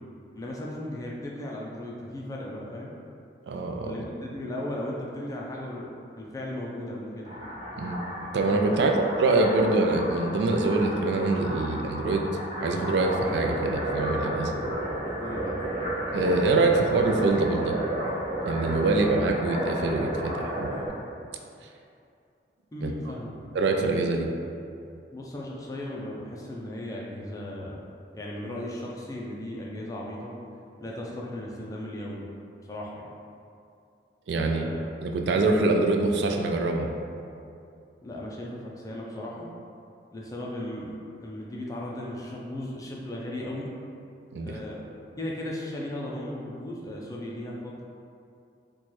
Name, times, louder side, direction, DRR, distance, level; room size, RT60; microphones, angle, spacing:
voice 1, 0.3-2.9 3.8-5.9 6.1-7.3 8.7-8.8 15.2-15.6 22.7-23.3 25.1-27.8 28.1-30.3 30.8-32.2 32.7-33.1 34.4-34.8 38.0-39.5 40.1-43.7 44.4-44.8 45.2-47.8, left 1 dB, 20° left, -3 dB, 0.4 m, -36 dB
voice 2, 3.5-4.0 7.8-8.0 8.3-8.9 9.2-12.3 12.6-14.6 16.1-17.7 18.4-20.8 22.8-22.9 23.5-24.3 34.3-34.7 35.0-36.9 44.3-44.6, right 3 dB, 75° right, 3 dB, 0.3 m, -24 dB
sound 1, 7.2-20.9, right 1 dB, 30° right, 1.3 m, -32 dB
4.2 x 2.2 x 3.1 m, 2.5 s
head